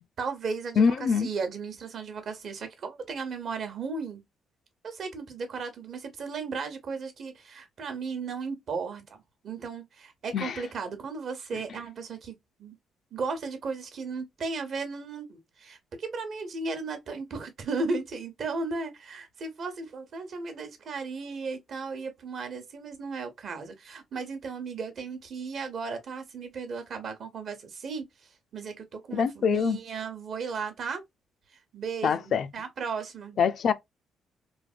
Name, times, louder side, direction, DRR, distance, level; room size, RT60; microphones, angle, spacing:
voice 1, 0.2-4.2 4.8-12.8 13.1-28.1 28.5-31.0 31.7-33.4, right 4 dB, 60° right, 0.8 m, -35 dB
voice 2, 0.8-1.3 10.3-10.6 29.1-29.8 32.0-32.5 33.4-33.7, left 6 dB, 60° left, 0.4 m, -24 dB
3.2 x 2.1 x 2.4 m
cardioid pair, 90°, 0 cm